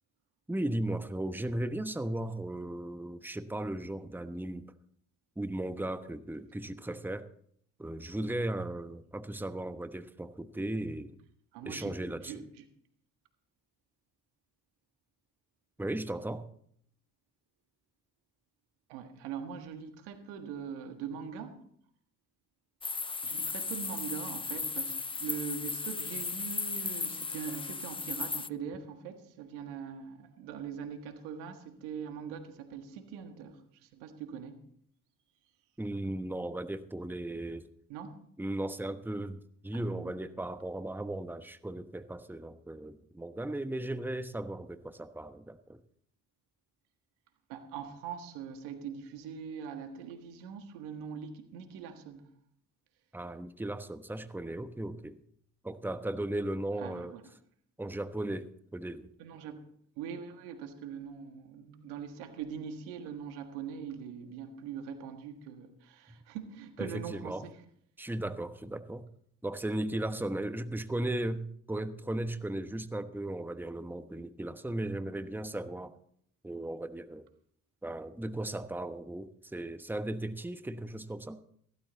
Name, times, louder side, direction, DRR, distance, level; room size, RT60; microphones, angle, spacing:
voice 1, 0.5-4.7 5.4-7.3 7.8-11.2 11.6-12.4 15.8-16.5 35.8-37.7 38.4-45.8 53.1-55.2 55.6-57.2 57.8-59.1 66.8-67.5 68.0-69.1 69.4-75.9 76.4-77.3 77.8-81.4, right 1 dB, 5° right, 1.1 m, -36 dB
voice 2, 11.5-12.0 12.2-12.6 18.9-21.6 23.2-34.6 37.9-38.2 39.7-40.2 47.5-52.2 56.8-57.2 59.2-59.6 60.0-67.6, right 7 dB, 85° right, 1.6 m, -42 dB
sound 1, 22.8-28.5, left 4 dB, 15° left, 0.5 m, -36 dB
15.5 x 13.0 x 4.0 m
hypercardioid pair, 50°, 39 cm